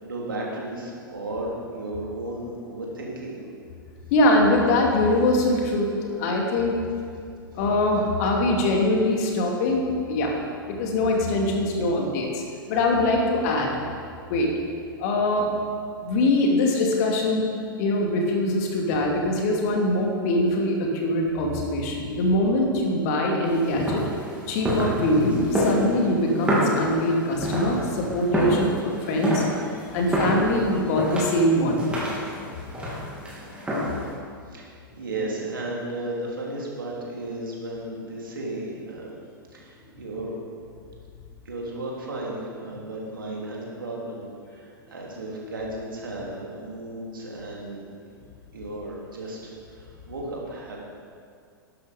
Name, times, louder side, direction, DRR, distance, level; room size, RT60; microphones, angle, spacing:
voice 1, 0.0-3.4 34.5-39.1 39.5-40.4 41.4-47.8 48.5-50.8, right 1 dB, 70° right, -3 dB, 3.3 m, -34 dB
voice 2, 4.1-6.8 7.5-10.4 10.7-12.4 12.7-13.7 14.3-14.5 15.0-15.5 16.0-17.5 17.8-24.0 24.5-29.5 29.9-31.9, left 1 dB, 45° left, 0 dB, 2.6 m, -23 dB
sound 1, 23.5-34.1, equal, 10° right, 3.6 m, -28 dB
12.0 x 12.0 x 5.2 m, 2.2 s
figure-of-eight pair, 95°, 12 cm